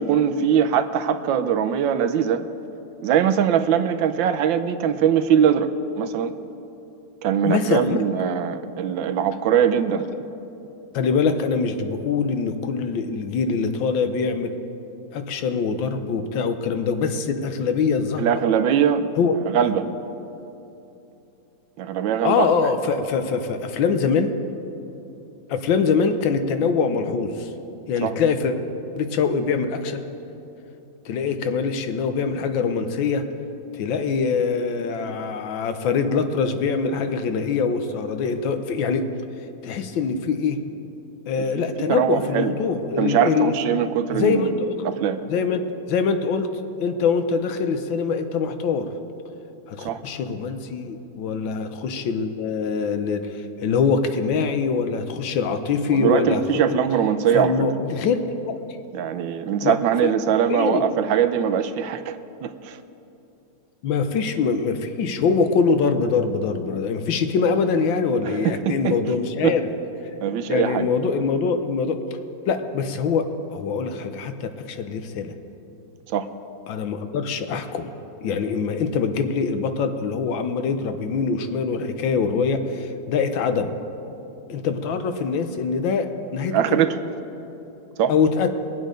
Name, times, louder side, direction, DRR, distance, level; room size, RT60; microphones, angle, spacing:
voice 1, 0.0-2.4 3.0-5.7 6.0-6.3 7.2-10.1 18.2-19.1 19.5-19.9 21.8-22.5 28.0-28.2 41.4-42.5 43.0-45.2 49.8-50.0 55.9-57.7 58.9-62.8 68.2-69.0 69.4-69.6 70.2-70.9 76.1-76.3 86.5-86.9 88.0-88.1, right 8 dB, 90° right, 9 dB, 1.4 m, -22 dB
voice 2, 7.4-8.0 10.9-14.5 15.1-18.2 19.2-19.3 22.2-24.3 25.5-27.5 27.9-28.5 28.9-30.0 31.1-33.2 33.7-39.1 39.6-40.6 41.3-43.5 44.1-44.8 45.3-46.5 46.8-48.9 49.7-56.8 57.3-58.2 59.6-59.7 60.0-60.1 60.5-60.9 63.8-69.7 70.5-72.0 72.5-75.3 76.7-77.9 78.2-83.7 84.5-86.8 88.1-88.5, left 5 dB, 85° left, 8 dB, 1.6 m, -23 dB
22.0 x 7.9 x 5.1 m, 2.9 s
omnidirectional pair, 2.0 m